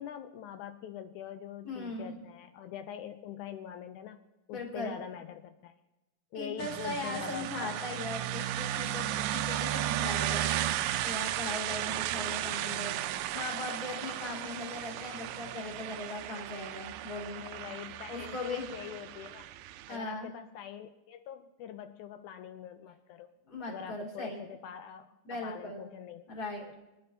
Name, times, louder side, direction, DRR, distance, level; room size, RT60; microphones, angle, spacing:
voice 1, 0.0-4.2 4.5-5.7 6.3-7.9 17.4-19.5 19.9-23.3 23.7-26.2 26.6-26.8, left 9 dB, 85° left, 9 dB, 1.7 m, -44 dB
voice 2, 1.6-2.1 4.5-4.9 6.3-10.6 11.0-13.0 13.3-17.4 18.1-18.7 19.9-20.3 23.4-24.4 25.2-25.8 26.3-26.8, left 2 dB, 30° left, 0 dB, 2.9 m, -39 dB
sound 1, 6.6-20.0, right 13 dB, 80° right, 2.1 m, -35 dB
25.0 x 11.5 x 2.7 m, 1.0 s
omnidirectional pair, 4.0 m